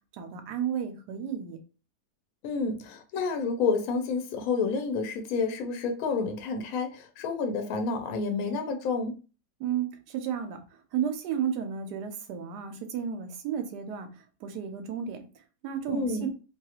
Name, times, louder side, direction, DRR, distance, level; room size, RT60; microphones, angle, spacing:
voice 1, 0.2-1.6 9.6-10.6 10.9-14.1 14.4-15.2 15.6-16.3, right 8 dB, 85° right, 1.2 m, -32 dB
voice 2, 2.4-9.2 15.9-16.3, left 4 dB, 70° left, 1.0 m, -29 dB
2.9 x 2.4 x 2.8 m
omnidirectional pair, 1.7 m